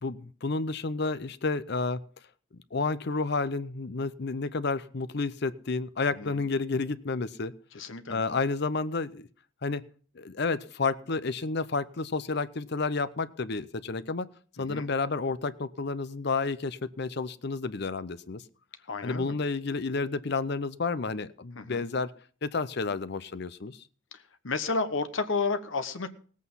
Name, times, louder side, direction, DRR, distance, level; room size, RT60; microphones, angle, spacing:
voice 1, 0.0-2.0 2.7-7.5 8.1-9.3 9.6-9.8 10.2-14.3 14.6-18.4 19.0-22.1 22.4-23.8, left 4 dB, 55° left, 15 dB, 0.7 m, -30 dB
voice 2, 7.7-8.2 14.6-14.9 18.9-19.3 21.6-21.8 24.4-26.1, left 4 dB, 70° left, 9 dB, 1.1 m, -31 dB
17.5 x 8.4 x 5.5 m, 0.44 s
head